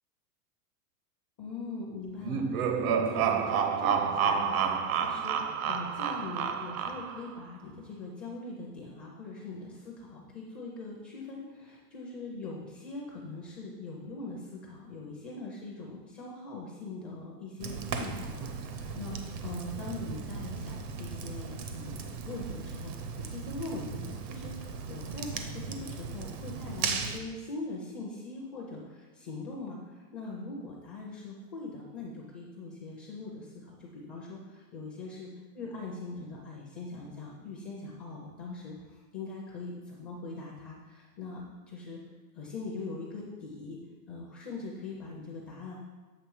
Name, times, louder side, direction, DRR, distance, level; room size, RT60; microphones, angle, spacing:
voice 1, 1.4-35.3 35.5-42.0 42.3-43.8 44.1-45.8, left 3 dB, 20° left, -3 dB, 0.4 m, -42 dB
sound 1, 2.2-7.3, right 7 dB, 60° right, 0.7 m, -29 dB
Fire, 17.6-27.2, right 5 dB, 80° right, 0.9 m, -37 dB
7.9 x 3.2 x 4.7 m, 1.3 s
supercardioid pair, 155°, 48 cm